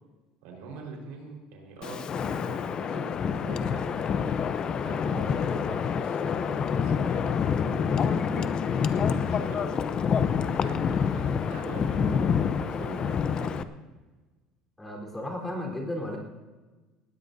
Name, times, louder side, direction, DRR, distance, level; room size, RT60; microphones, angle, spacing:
voice 1, 0.4-4.1 4.7-10.2 10.5-13.7, right 4 dB, 85° right, 0 dB, 4.5 m, -43 dB
Wind, 1.8-13.6, left 7 dB, 35° left, 0.7 m, -27 dB
voice 2, 14.8-16.2, left 1 dB, 10° left, -1 dB, 3.9 m, -34 dB
19.5 x 16.0 x 2.7 m, 1.2 s
cardioid pair, 125°, 2 cm